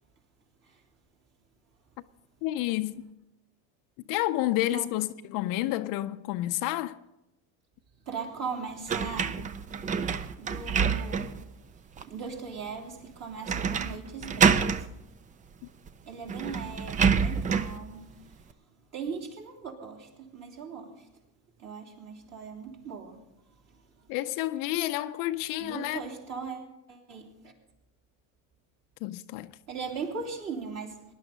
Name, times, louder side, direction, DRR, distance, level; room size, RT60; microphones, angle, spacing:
voice 1, 2.4-3.1 4.1-7.0 24.1-26.0 29.0-29.6, left 15 dB, 55° left, 0.6 m, -30 dB
voice 2, 8.0-9.4 10.4-11.4 12.0-14.9 16.1-18.5 18.9-21.1 21.6-23.2 23.7-24.1 25.6-27.5 29.7-31.0, right 5 dB, 40° right, 3.2 m, -39 dB
sound 1, 8.9-11.5 12.0-12.1 13.5-14.0 14.2-14.9 15.9-16.0 16.3-17.8, right 6 dB, 20° right, 0.4 m, -26 dB
19.5 x 11.0 x 3.9 m
supercardioid pair, 125°, 39 cm